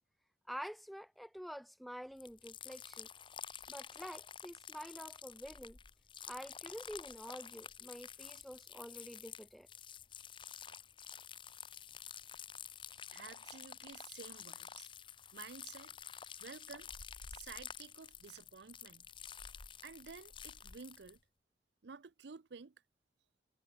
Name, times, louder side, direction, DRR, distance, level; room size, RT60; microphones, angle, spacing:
voice 1, 0.5-3.1 3.7-5.8 6.3-9.7, equal, ahead, 1.0 m, -48 dB
sound 1, 2.2-21.2, left 8 dB, 30° left, 0.8 m, -50 dB
voice 2, 13.1-14.9 15.3-15.9 16.4-16.9 17.3-19.1 19.8-21.2 21.8-22.7, right 5 dB, 75° right, 0.6 m, -52 dB
head